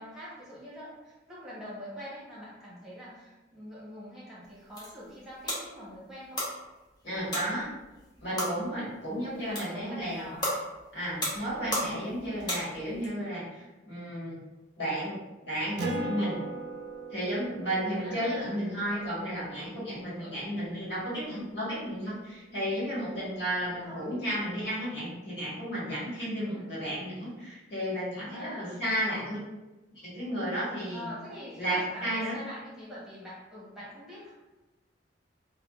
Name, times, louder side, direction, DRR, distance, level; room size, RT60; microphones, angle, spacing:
voice 1, 0.0-6.5 9.2-10.6 17.9-18.6 18.9-19.4 20.2-20.5 23.6-24.1 26.4-26.8 28.2-28.8 30.9-34.3, equal, 5° right, -9 dB, 0.9 m, -44 dB
sound 1, 4.4-13.1, equal, 25° left, 0.7 m, -37 dB
voice 2, 7.0-7.7 8.2-10.3 10.9-14.4 14.8-15.1 15.4-16.4 17.1-29.4 30.0-31.1 31.6-32.4, equal, 70° left, -9 dB, 1.5 m, -33 dB
Acoustic guitar, 15.8-20.7, right 2 dB, 65° right, 0.4 m, -40 dB
3.4 x 2.2 x 2.3 m, 1.1 s
head